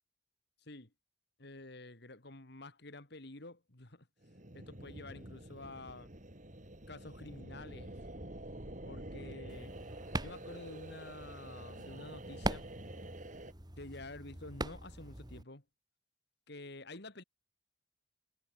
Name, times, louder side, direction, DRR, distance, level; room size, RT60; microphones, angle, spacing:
voice 1, 0.6-0.9 1.4-4.1 4.5-6.1 6.9-7.9 8.8-9.7 10.2-12.7 13.8-15.6 16.5-17.2, left 2 dB, 60° left, 2.7 m, -49 dB
sound 1, 4.2-13.5, right 1 dB, 45° right, 4.5 m, -48 dB
sound 2, 9.5-15.4, right 2 dB, 20° right, 2.7 m, -42 dB
head